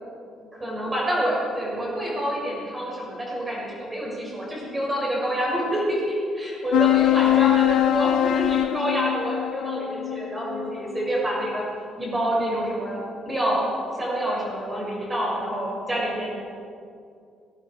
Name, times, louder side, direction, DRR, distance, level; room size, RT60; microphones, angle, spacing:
voice 1, 0.4-11.7 12.0-16.3, right 1 dB, 10° right, -5 dB, 6.9 m, -27 dB
sound 1, 6.7-11.6, left 14 dB, 65° left, 0.6 m, -23 dB
30.0 x 20.0 x 5.0 m, 2.3 s
cardioid pair, 175°, 0 cm